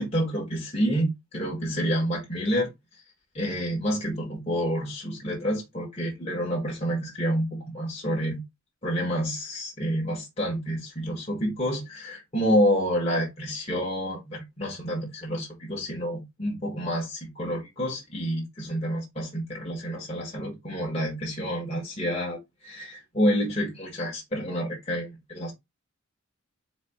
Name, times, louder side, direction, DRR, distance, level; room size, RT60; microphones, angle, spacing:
voice 1, 0.0-2.7 3.3-8.4 8.8-25.5, equal, 30° left, 1.3 m, -28 dB
4.2 x 2.9 x 4.2 m
head